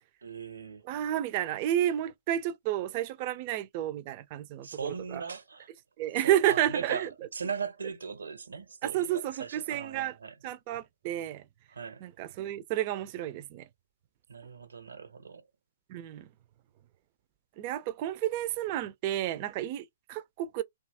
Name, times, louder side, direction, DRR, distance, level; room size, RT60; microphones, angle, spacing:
voice 1, 0.2-0.8 4.6-5.7 6.2-10.4 11.7-12.0 14.3-15.5, right 5 dB, 80° right, 0.7 m, -39 dB
voice 2, 0.9-5.2 6.0-7.1 8.8-10.1 10.4-11.4 12.0-13.7 15.9-16.3 17.6-20.6, right 12 dB, 40° right, 0.4 m, -31 dB
2.7 x 2.3 x 2.6 m
hypercardioid pair, 130°, 0 cm